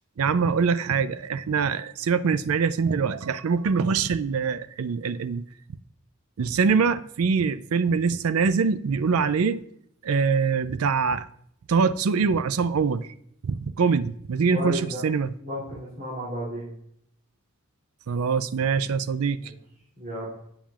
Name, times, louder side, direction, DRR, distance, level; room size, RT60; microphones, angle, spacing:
voice 1, 0.2-5.4 6.4-9.6 10.0-11.2 11.7-13.1 13.4-15.3 18.1-19.4, right 5 dB, 80° right, 0.4 m, -24 dB
voice 2, 14.5-15.0 15.4-16.7 19.4-19.5 20.0-20.3, equal, 45° right, 2.9 m, -33 dB
17.5 x 7.2 x 2.4 m
head